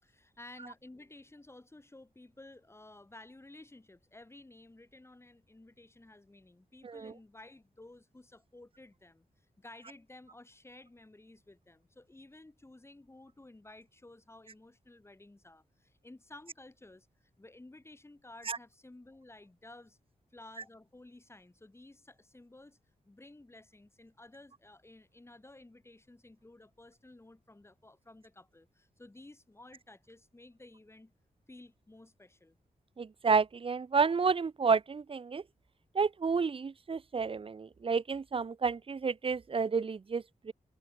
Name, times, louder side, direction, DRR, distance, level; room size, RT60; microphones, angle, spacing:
voice 1, 0.0-9.3 9.6-20.0 20.3-22.8 23.1-31.1 31.5-32.6, left 2 dB, 15° left, 5.8 m, -54 dB
voice 2, 33.0-35.4 35.9-40.5, right 5 dB, 40° right, 0.8 m, -30 dB
wide cardioid pair, 145°, 15 cm